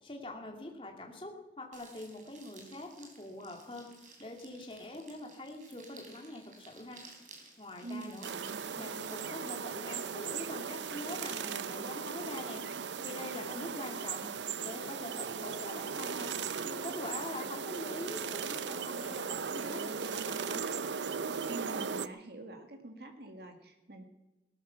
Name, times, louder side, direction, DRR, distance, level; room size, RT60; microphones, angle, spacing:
voice 1, 0.0-7.0 7.6-8.3 8.7-12.6 13.0-14.3 14.6-16.3 16.6-20.6, left 1 dB, 30° left, 2 dB, 2.4 m, -44 dB
sound 1, 1.7-9.5, right 3 dB, 45° right, 3.9 m, -56 dB
voice 2, 7.8-8.6 21.5-24.1, right 2 dB, 65° right, 4 dB, 2.0 m, -46 dB
sound 2, 8.2-22.1, right 6 dB, 90° right, 0.7 m, -37 dB
18.0 x 13.0 x 5.8 m, 1.0 s
head